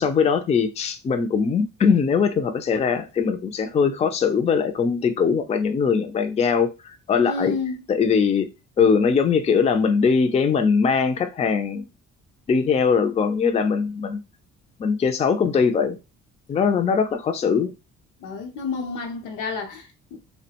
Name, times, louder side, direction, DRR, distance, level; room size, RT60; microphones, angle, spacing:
voice 1, 0.0-7.6 7.9-8.5 8.8-11.9 12.5-14.2 14.8-16.0 16.5-17.7, left 6 dB, 25° left, 0.3 m, -21 dB
voice 2, 7.2-7.8 18.2-20.2, left 4 dB, 90° left, 0.7 m, -30 dB
2.4 x 2.1 x 2.8 m
cardioid pair, 90°, 30 cm